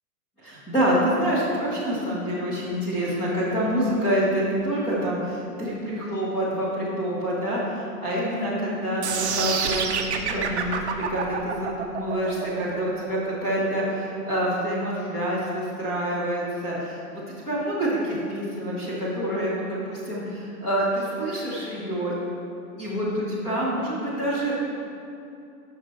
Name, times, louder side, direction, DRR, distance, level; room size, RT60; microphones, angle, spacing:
voice 1, 0.4-17.0 17.5-22.2 22.8-24.6, right 1 dB, 10° left, -9 dB, 0.9 m, -27 dB
sound 1, 9.0-15.1, right 6 dB, 50° right, 0.6 m, -28 dB
10.0 x 5.9 x 3.1 m, 2.6 s
hypercardioid pair, 175°, 45 cm